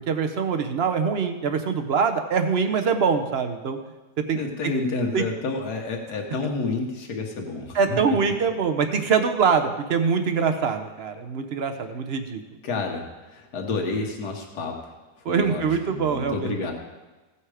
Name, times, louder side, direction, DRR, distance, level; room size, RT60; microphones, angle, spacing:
voice 1, 0.1-3.8 4.3-4.4 5.1-5.2 7.7-12.4 15.2-16.5, right 6 dB, 50° right, 7 dB, 0.9 m, -23 dB
voice 2, 4.3-8.0 12.6-14.9 15.3-16.7, left 3 dB, 80° left, 1 dB, 1.7 m, -29 dB
15.5 x 5.7 x 4.9 m, 1.2 s
omnidirectional pair, 1.7 m